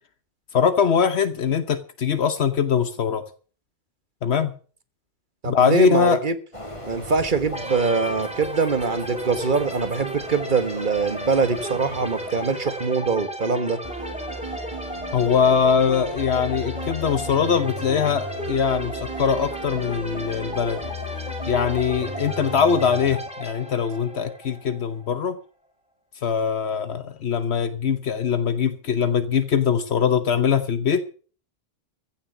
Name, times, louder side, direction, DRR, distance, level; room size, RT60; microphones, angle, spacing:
voice 1, 0.5-3.2 4.2-4.5 5.5-6.2 15.1-20.9 21.5-25.4 26.2-31.0, left 7 dB, 80° left, 1.3 m, -22 dB
voice 2, 5.4-6.3 6.9-13.8, right 4 dB, 50° right, 1.6 m, -23 dB
Train, 6.5-13.2, left 1 dB, 30° left, 3.0 m, -40 dB
sound 1, 7.5-25.1, equal, 5° right, 2.8 m, -34 dB
sound 2, 13.8-23.2, left 1 dB, 25° right, 5.5 m, -35 dB
15.5 x 7.4 x 8.0 m
omnidirectional pair, 1.1 m